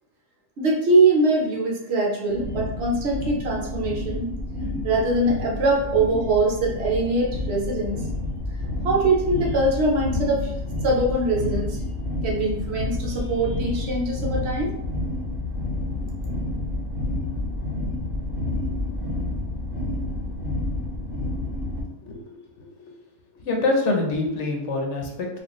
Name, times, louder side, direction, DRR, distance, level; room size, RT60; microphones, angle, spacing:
voice 1, 0.6-4.3 4.8-8.0 8.8-10.5 10.8-11.8 12.2-14.7, right 2 dB, 60° right, -1 dB, 1.0 m, -22 dB
sound 1, 2.3-21.8, left 2 dB, 45° right, 1.4 m, -29 dB
voice 2, 23.4-25.4, left 2 dB, 70° left, 1 dB, 1.0 m, -25 dB
4.2 x 2.4 x 3.0 m, 0.84 s
omnidirectional pair, 1.3 m